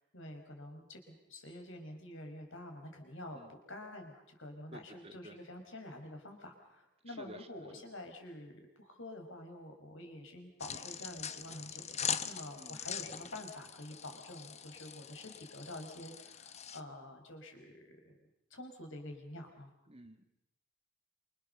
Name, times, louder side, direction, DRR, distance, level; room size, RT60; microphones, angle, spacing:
voice 1, 0.1-18.0 18.5-19.7, left 1 dB, 60° left, 4 dB, 5.6 m, -48 dB
voice 2, 4.7-5.4 7.1-7.5 12.6-12.8 19.9-20.3, right 1 dB, 30° right, 7 dB, 1.9 m, -52 dB
sound 1, 10.6-16.8, left 8 dB, 30° left, 0.9 m, -42 dB
27.5 x 26.0 x 6.8 m, 0.83 s
head